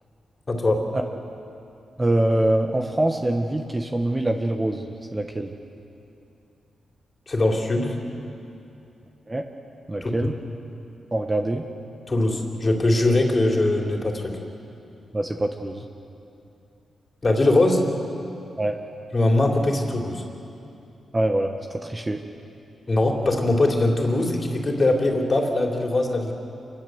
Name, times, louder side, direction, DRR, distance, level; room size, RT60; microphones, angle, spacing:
voice 1, 0.5-0.8 7.3-8.0 10.0-10.1 12.1-14.4 17.2-17.9 19.1-20.2 22.9-26.3, left 2 dB, 30° left, 1 dB, 3.4 m, -21 dB
voice 2, 2.0-5.5 9.3-9.4 9.9-10.3 11.1-11.6 15.1-15.8 18.6-18.8 21.1-22.2, right 1 dB, 15° right, 4 dB, 1.1 m, -24 dB
28.0 x 21.5 x 7.9 m, 2.8 s
wide cardioid pair, 130°, 0 cm